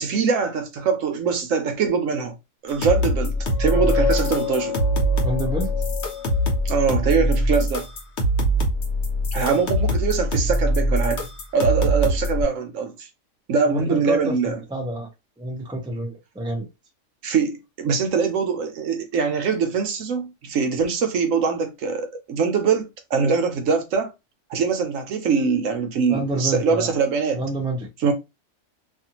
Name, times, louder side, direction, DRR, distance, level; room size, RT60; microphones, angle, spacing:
voice 1, 0.0-2.3 2.6-4.8 6.6-7.9 9.3-11.3 11.5-13.1 13.5-14.6 17.2-24.1 24.5-27.4 28.0-28.1, right 5 dB, 70° right, 1.0 m, -23 dB
sound 1, 2.7-12.4, equal, 55° left, 1.1 m, -23 dB
sound 2, 3.4-6.9, left 11 dB, 85° left, 1.1 m, -29 dB
voice 2, 5.2-5.7 13.7-15.1 15.4-16.7 26.1-26.9 27.3-27.9, right 1 dB, 5° right, 0.6 m, -28 dB
2.7 x 2.6 x 2.8 m
omnidirectional pair, 1.4 m